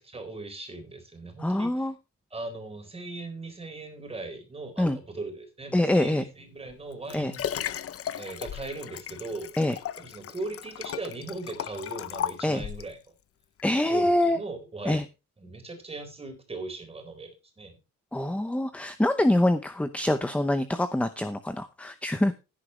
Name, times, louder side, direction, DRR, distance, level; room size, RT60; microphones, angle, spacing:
voice 1, 0.0-1.9 2.3-7.5 8.2-9.7 10.0-13.0 13.9-15.1 15.4-17.8, right 2 dB, 20° right, 5 dB, 4.1 m, -39 dB
voice 2, 1.4-1.9 4.8-5.0 5.7-6.2 7.1-7.3 9.6-9.8 12.4-12.6 13.6-14.4 14.9-15.0 18.1-22.3, left 1 dB, 5° left, 10 dB, 0.7 m, -25 dB
Liquid, 6.7-13.0 13.6-13.7, left 10 dB, 45° left, 0.7 m, -36 dB
16.0 x 10.0 x 3.2 m, 0.28 s
cardioid pair, 180°, 32 cm